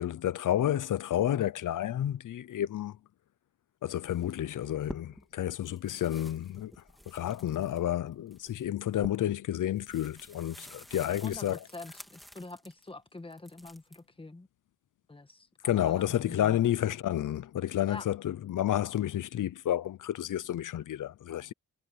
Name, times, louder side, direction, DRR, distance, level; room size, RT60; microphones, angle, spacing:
voice 1, 0.0-3.0 3.8-6.7 7.1-11.6 15.6-21.5, left 12 dB, 85° left, 0.8 m, -30 dB
sound 1, 4.0-5.3 5.6-12.9 13.3-14.0, equal, ahead, 2.6 m, -49 dB
voice 2, 11.2-14.5 15.1-16.6 17.9-18.1, left 2 dB, 15° left, 1.5 m, -45 dB
wide cardioid pair, 110°, 30 cm